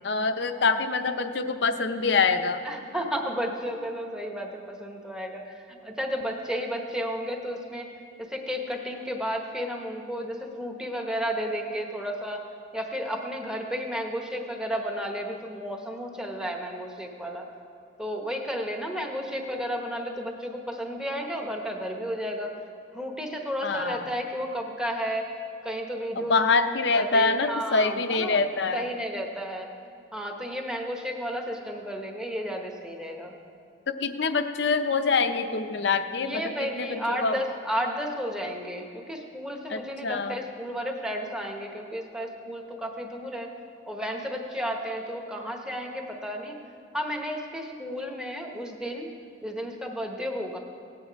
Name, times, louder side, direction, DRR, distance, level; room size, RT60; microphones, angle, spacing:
voice 1, 0.0-2.6 23.6-24.0 26.2-28.9 33.9-37.4 39.7-40.4, left 4 dB, 60° left, 9 dB, 0.6 m, -25 dB
voice 2, 2.6-7.9 8.2-12.4 12.7-17.5 18.0-22.5 22.9-25.3 25.6-26.4 26.9-28.4 28.7-29.7 30.1-33.3 36.2-43.5 43.9-46.6 46.9-49.1 49.4-50.6, equal, 5° right, 2 dB, 1.0 m, -32 dB
17.5 x 8.9 x 4.6 m, 2.4 s
head